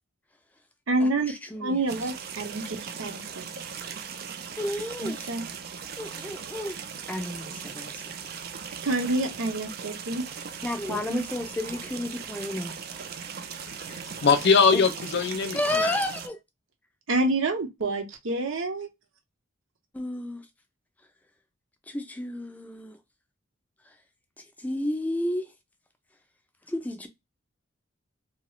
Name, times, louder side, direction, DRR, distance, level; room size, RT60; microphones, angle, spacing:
voice 1, 0.9-1.3 1.6-3.6 5.0-5.5 8.8-10.3 10.9-11.2 17.1-18.9, right 2 dB, 75° right, 0.8 m, -28 dB
sound 1, 1.9-16.3, right 6 dB, 50° right, 0.4 m, -39 dB
voice 2, 4.6-5.2 6.0-6.8 7.1-8.2 10.6-12.7 14.7-14.8 15.5-16.4 19.9-20.4 21.9-23.0 24.6-25.5 26.7-27.1, left 1 dB, 10° left, 0.5 m, -31 dB
voice 3, 13.9-16.0, left 5 dB, 60° left, 0.5 m, -22 dB
2.9 x 2.4 x 3.0 m
head